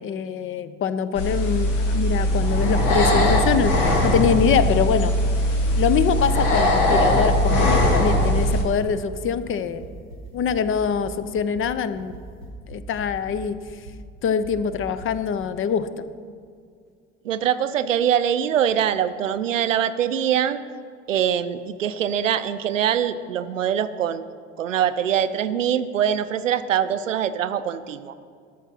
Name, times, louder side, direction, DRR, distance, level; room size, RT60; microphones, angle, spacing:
voice 1, 0.0-5.1 5.8-9.8 10.3-12.2 12.7-13.9 14.2-16.0, left 7 dB, 35° left, 14 dB, 0.6 m, -24 dB
sound 1, 1.1-8.6, left 1 dB, 70° left, 1.5 m, -20 dB
sound 2, 8.8-14.0 14.4-15.1, right 2 dB, 90° left, 2.3 m, -41 dB
voice 2, 17.2-20.6 21.1-24.3 24.6-28.2, right 9 dB, 80° right, 13 dB, 0.5 m, -23 dB
13.5 x 6.2 x 5.7 m, 2.2 s
figure-of-eight pair, 55°, 38 cm